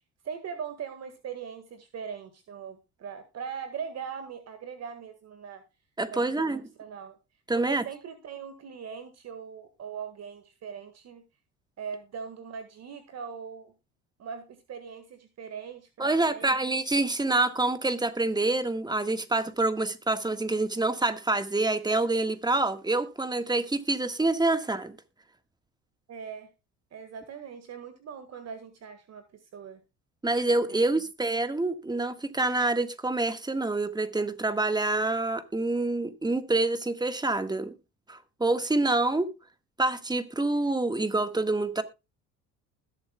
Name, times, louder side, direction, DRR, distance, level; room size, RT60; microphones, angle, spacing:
voice 1, 0.2-5.6 6.1-6.4 6.8-7.2 7.5-11.2 11.8-13.7 14.2-16.6 26.1-26.5 26.9-29.2 29.5-29.8 30.7-31.0, right 7 dB, 50° right, 1.7 m, -40 dB
voice 2, 6.0-6.6 7.5-7.8 16.0-24.9 30.2-37.7 38.1-39.3 39.8-41.8, right 2 dB, 10° right, 1.5 m, -27 dB
20.5 x 7.4 x 2.3 m
hypercardioid pair, 70°, 35 cm